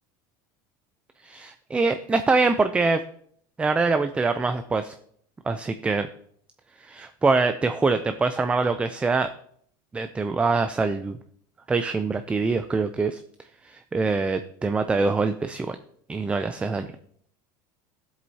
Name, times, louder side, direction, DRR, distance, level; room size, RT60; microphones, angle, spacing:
voice 1, 1.2-3.0 3.6-4.9 5.5-6.1 6.8-9.3 9.9-11.2 11.7-13.2 13.7-15.8 16.1-16.9, right 3 dB, 10° right, 9 dB, 0.4 m, -24 dB
13.0 x 7.7 x 2.8 m, 0.64 s
supercardioid pair, 140°, 11 cm